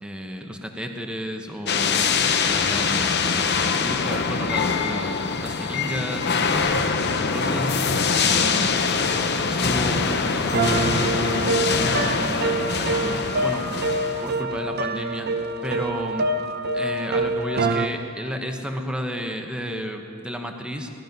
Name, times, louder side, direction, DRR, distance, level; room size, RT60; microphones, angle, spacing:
voice 1, 0.0-2.1 2.4-6.8 7.1-7.7 8.2-9.0 9.4-13.7 14.2-16.3 16.7-20.9, equal, 5° right, 3 dB, 1.0 m, -33 dB
sound 1, 1.7-14.3, left 5 dB, 50° left, 0.8 m, -23 dB
sound 2, 2.6-2.7 3.9-4.0 5.2-5.3 6.5-6.6 7.9-8.0 9.2-9.3 10.5-17.9, right 2 dB, 50° right, 0.7 m, -25 dB
18.5 x 12.5 x 5.3 m, 2.6 s
head